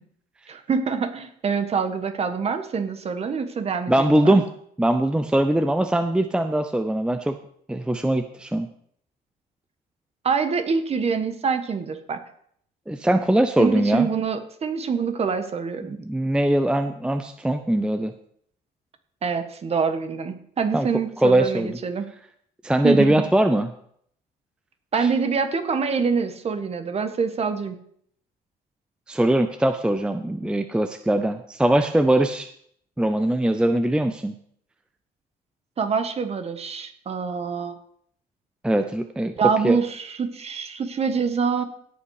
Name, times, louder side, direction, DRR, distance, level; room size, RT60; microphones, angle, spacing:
voice 1, 0.5-4.4 10.2-12.2 13.6-16.0 19.2-22.1 22.8-23.2 24.9-27.8 35.8-37.8 39.4-41.6, right 5 dB, 35° right, 8 dB, 1.4 m, -25 dB
voice 2, 3.9-4.4 4.8-7.4 7.7-8.7 12.9-14.1 16.0-18.1 20.7-20.9 21.2-21.8 22.6-23.7 25.0-25.1 29.1-32.5 33.0-34.3 38.6-39.3 39.6-39.8, right 1 dB, 5° right, 8 dB, 0.6 m, -21 dB
17.0 x 5.7 x 4.8 m, 0.66 s
cardioid pair, 110°, 17 cm